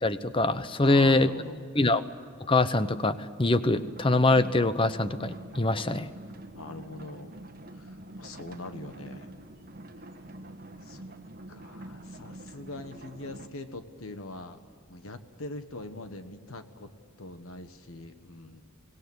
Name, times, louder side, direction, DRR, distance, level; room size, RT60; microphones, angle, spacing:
voice 1, 0.0-1.3 1.8-2.0 2.5-6.1, left 2 dB, 25° left, 13 dB, 0.8 m, -24 dB
voice 2, 0.8-1.6 6.5-7.4 7.7-9.3 10.8-11.1 11.5-14.6 14.9-16.9 17.2-18.6, left 2 dB, 70° left, 9 dB, 1.4 m, -42 dB
sound 1, 3.7-13.5, right 1 dB, 40° right, 1.4 m, -45 dB
24.5 x 19.0 x 8.0 m, 2.1 s
head